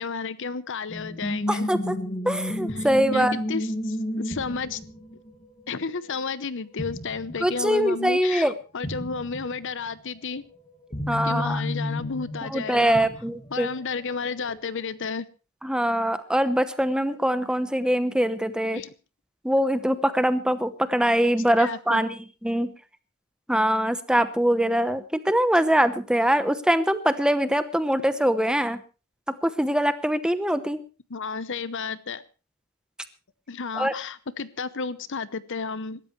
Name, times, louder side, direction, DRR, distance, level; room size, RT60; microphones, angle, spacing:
voice 1, 0.0-1.7 2.7-4.8 5.7-10.4 11.1-13.1 13.5-15.3 18.7-18.9 21.6-22.0 31.1-32.2 33.5-36.0, left 5 dB, 55° left, 15 dB, 0.8 m, -32 dB
sound 1, 0.9-6.5 6.8-7.5 7.8-7.9 8.8-9.6 10.4-13.7 14.5-14.9, left 1 dB, 25° left, 2.1 m, -32 dB
voice 2, 1.5-2.0 2.2-3.3 7.4-8.5 11.1-11.6 12.4-13.7 15.6-18.8 19.4-22.7 23.5-28.8 29.3-30.8 33.8-33.9, equal, 5° right, 11 dB, 0.9 m, -23 dB
25.5 x 13.0 x 3.2 m, 0.32 s
head